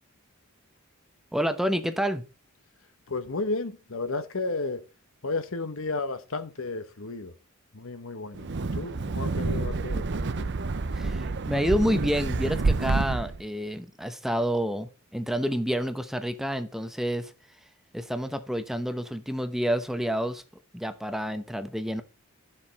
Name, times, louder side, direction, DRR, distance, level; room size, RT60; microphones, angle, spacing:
voice 1, 1.3-2.2 10.9-17.3 17.9-20.4 20.7-22.0, equal, ahead, 0.9 m, -29 dB
voice 2, 3.1-4.8 5.2-7.3 7.7-8.5 8.7-10.5, left 3 dB, 65° left, 1.1 m, -33 dB
Wind, 8.3-13.4, right 3 dB, 55° right, 0.7 m, -28 dB
12.0 x 7.4 x 4.2 m
head